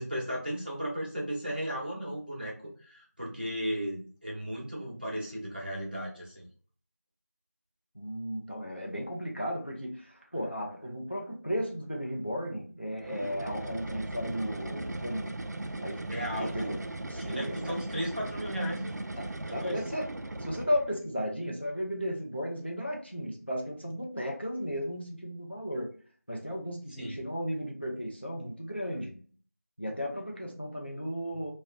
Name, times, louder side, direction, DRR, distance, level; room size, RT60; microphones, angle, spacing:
voice 1, 0.0-6.5 16.1-16.8 17.1-19.0 19.5-19.8 27.0-27.2, equal, 35° right, -4 dB, 0.8 m, -35 dB
voice 2, 7.9-15.4 15.8-16.0 16.4-16.8 17.1-17.6 19.2-20.1 20.4-25.9 26.3-29.2 29.8-31.5, equal, 40° left, 0 dB, 0.4 m, -35 dB
sound 1, 13.0-21.0, right 2 dB, 80° right, 0.4 m, -38 dB
2.5 x 2.0 x 2.5 m, 0.42 s
figure-of-eight pair, 180°, 9 cm